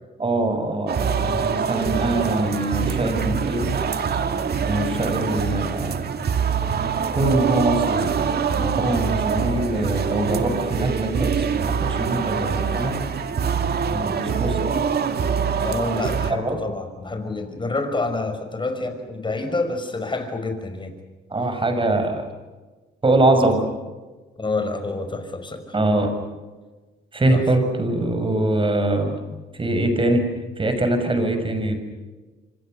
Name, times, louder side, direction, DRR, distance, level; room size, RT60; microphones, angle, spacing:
voice 1, 0.2-3.7 4.6-6.1 7.1-13.0 13.8-14.7 16.3-16.6 21.3-22.3 23.0-23.6 25.7-26.1 27.1-29.1 29.5-30.2 30.6-31.8, right 2 dB, 25° right, 7 dB, 6.7 m, -23 dB
sound 1, 0.9-16.3, right 6 dB, 55° right, 2.1 m, -24 dB
voice 2, 15.6-21.0 24.4-25.7 27.3-27.4 29.3-29.4, left 3 dB, 25° left, 7 dB, 5.8 m, -28 dB
28.0 x 25.5 x 6.7 m, 1.3 s
cardioid pair, 90°, 20 cm